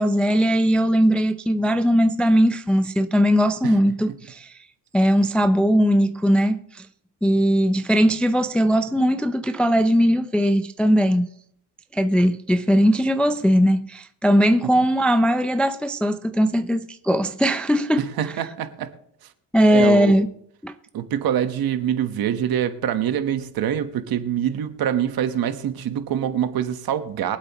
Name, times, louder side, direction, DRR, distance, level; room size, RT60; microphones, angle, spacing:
voice 1, 0.0-4.5 4.9-6.9 7.2-11.3 11.9-18.1 19.5-20.3 20.6-20.7, equal, 5° left, 0.4 m, -19 dB
voice 2, 18.0-18.9 19.7-20.2 20.9-27.4, right 9 dB, 60° right, 1.3 m, -25 dB
23.5 x 8.0 x 3.0 m
cardioid pair, 130°, 41 cm